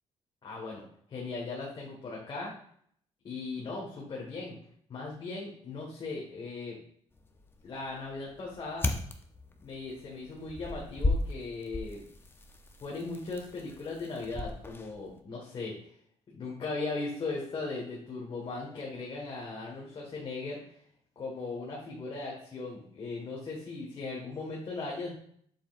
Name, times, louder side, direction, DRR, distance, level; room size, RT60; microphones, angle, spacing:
voice 1, 0.4-0.8 1.1-2.5 3.2-4.6 4.9-6.8 7.6-8.9 9.6-12.1 12.8-15.8 16.3-20.7 21.2-25.2, left 3 dB, 45° left, -4 dB, 1.7 m, -38 dB
sound 1, 7.1-15.2, left 2 dB, 20° left, 0.8 m, -37 dB
7.4 x 6.8 x 2.6 m, 0.63 s
cardioid pair, 115°, 12 cm